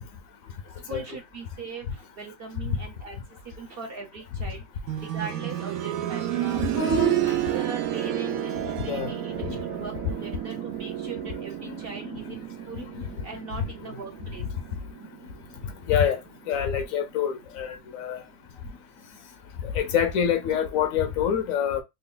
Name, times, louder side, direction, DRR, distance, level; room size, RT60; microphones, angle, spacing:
voice 1, 0.9-3.2 3.6-4.6 5.1-6.7 7.2-9.9 10.2-12.9 13.2-14.4, right 4 dB, 55° right, 0.7 m, -40 dB
sound 1, 4.9-15.6 17.0-17.1, right 11 dB, 85° right, 1.1 m, -30 dB
voice 2, 6.8-7.4 8.8-9.1 9.5-9.6 11.2-11.3 11.7-12.3 12.7-13.0 13.6-14.0 14.4-14.5 15.6-16.2 16.5-18.2 19.6-21.8, left 8 dB, 75° left, 1.1 m, -27 dB
3.2 x 2.4 x 3.7 m
omnidirectional pair, 1.5 m